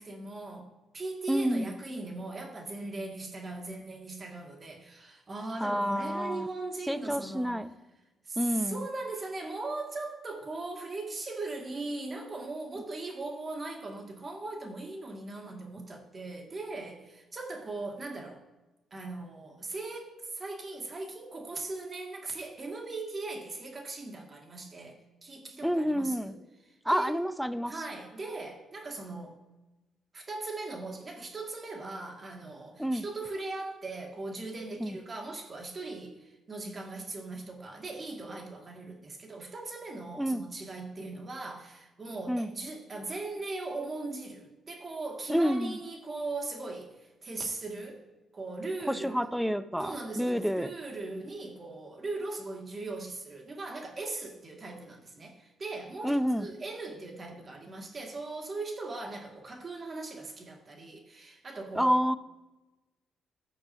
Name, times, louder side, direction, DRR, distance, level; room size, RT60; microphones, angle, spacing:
voice 1, 0.0-7.6 8.2-18.4 18.9-26.4 26.6-27.2 27.7-29.4 30.1-48.0 48.3-49.3 49.8-62.0, right 3 dB, 35° right, 1 dB, 2.4 m, -39 dB
voice 2, 1.3-1.7 5.6-6.5 6.9-7.7 8.4-8.8 25.6-26.3 26.9-27.7 32.8-33.0 34.8-35.0 40.2-40.4 42.3-42.5 45.3-45.8 48.9-50.7 56.0-56.5 61.7-62.2, equal, ahead, 13 dB, 0.6 m, -28 dB
16.0 x 6.6 x 2.9 m, 1.1 s
cardioid pair, 90°, 0 cm